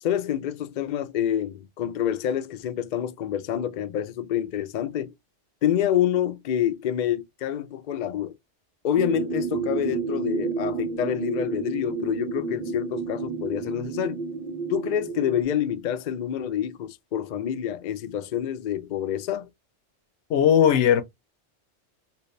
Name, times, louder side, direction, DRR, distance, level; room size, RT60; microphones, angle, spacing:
voice 1, 0.0-5.1 5.6-8.3 8.8-14.2 14.7-19.5, left 10 dB, 55° left, 0.5 m, -27 dB
sound 1, 8.9-15.4, right 4 dB, 50° right, 0.9 m, -30 dB
voice 2, 20.3-21.0, left 9 dB, 80° left, 0.9 m, -18 dB
3.0 x 2.9 x 3.0 m
omnidirectional pair, 1.2 m